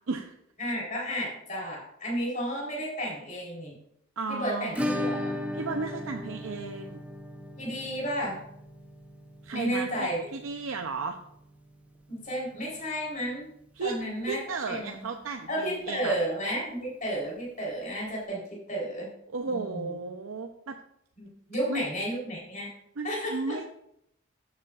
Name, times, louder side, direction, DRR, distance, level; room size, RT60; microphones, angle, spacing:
voice 1, 0.6-3.7 4.3-5.4 7.6-8.4 9.5-10.2 12.1-13.5 13.8-14.4 14.7-15.1 15.5-19.1 19.5-20.0 21.2-22.7 23.0-23.6, equal, 35° left, -3 dB, 3.6 m, -32 dB
voice 2, 4.2-4.9 5.5-7.0 9.4-11.2 13.8-14.0 14.2-16.2 19.3-20.8 21.7-21.8 23.0-23.6, right 4 dB, 70° right, 4 dB, 0.6 m, -34 dB
Acoustic guitar / Strum, 4.7-13.4 13.6-13.7 14.0-14.1 14.5-14.6 16.6-16.7 17.8-17.9, left 1 dB, 5° right, 0.7 m, -37 dB
13.5 x 7.4 x 2.4 m, 0.74 s
head